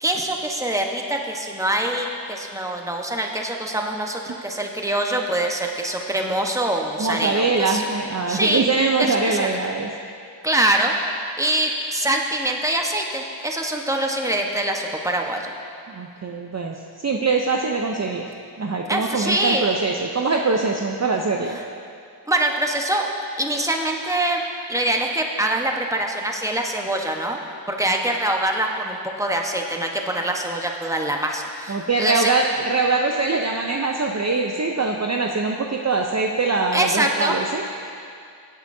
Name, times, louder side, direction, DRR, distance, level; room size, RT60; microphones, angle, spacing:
voice 1, 0.0-7.8 8.3-8.7 9.0-9.5 10.4-10.9 11.4-15.5 18.9-19.7 22.3-23.1 23.4-24.4 24.7-32.3 36.7-37.3, right 1 dB, 5° right, 1 dB, 1.1 m, -24 dB
voice 2, 7.0-9.9 15.9-18.3 18.6-21.6 31.7-37.6, right 3 dB, 35° right, 1 dB, 0.7 m, -23 dB
17.0 x 8.2 x 2.7 m, 2.4 s
cardioid pair, 45°, 48 cm